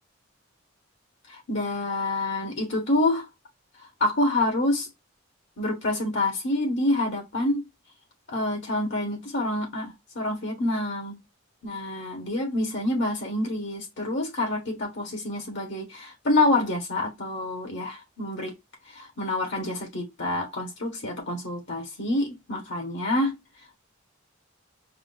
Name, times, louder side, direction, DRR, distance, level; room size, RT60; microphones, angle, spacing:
voice 1, 1.3-3.3 4.0-4.9 5.6-7.6 8.3-11.2 11.6-18.5 18.9-23.3, left 2 dB, 60° left, 1.5 m, -27 dB
4.7 x 2.0 x 4.0 m
head